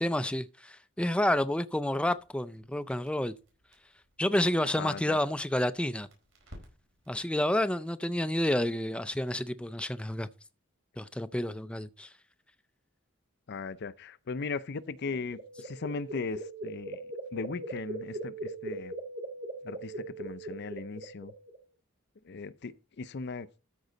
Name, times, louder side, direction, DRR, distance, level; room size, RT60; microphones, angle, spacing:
voice 1, 0.0-3.3 4.2-6.1 7.1-10.3 11.0-12.1, left 1 dB, 5° left, 0.4 m, -29 dB
Crackle, 1.9-7.2, equal, 70° right, 4.5 m, -57 dB
voice 2, 4.7-5.2 13.5-17.0 17.3-18.9 19.6-21.3 22.2-23.5, left 4 dB, 55° left, 0.5 m, -38 dB
sound 1, 14.9-21.6, right 2 dB, 30° right, 1.5 m, -40 dB
13.0 x 5.3 x 3.9 m
head